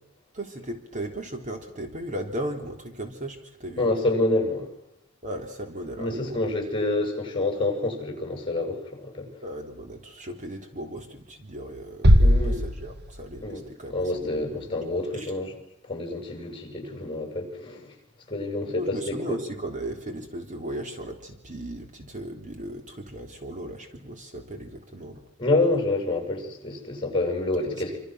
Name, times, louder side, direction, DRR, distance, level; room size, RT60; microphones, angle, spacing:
voice 1, 0.3-3.9 5.2-6.5 9.4-14.6 15.1-15.3 18.7-25.2 27.5-27.7, right 1 dB, 35° right, 3.5 m, -36 dB
voice 2, 3.8-4.7 6.0-9.3 12.2-12.6 13.4-13.6 13.9-15.5 15.9-17.9 18.3-19.4 25.4-28.0, left 2 dB, 25° left, 7.6 m, -27 dB
sound 1, 12.0-14.0, equal, 50° right, 1.7 m, -20 dB
27.5 x 27.0 x 6.3 m
head